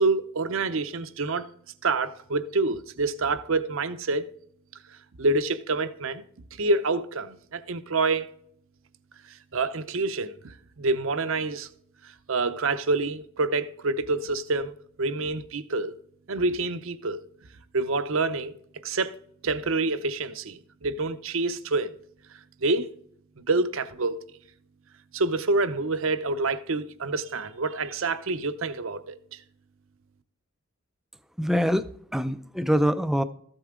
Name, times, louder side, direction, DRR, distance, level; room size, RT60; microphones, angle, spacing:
voice 1, 0.0-1.5 1.8-4.3 5.2-6.2 6.6-8.3 9.3-11.7 12.0-15.9 16.3-17.2 17.7-18.5 18.8-19.2 19.4-21.9 22.6-22.9 23.4-24.2 25.1-29.4, right 3 dB, 65° right, 0.7 m, -27 dB
voice 2, 31.4-33.2, equal, ahead, 0.4 m, -24 dB
14.0 x 7.9 x 3.7 m
head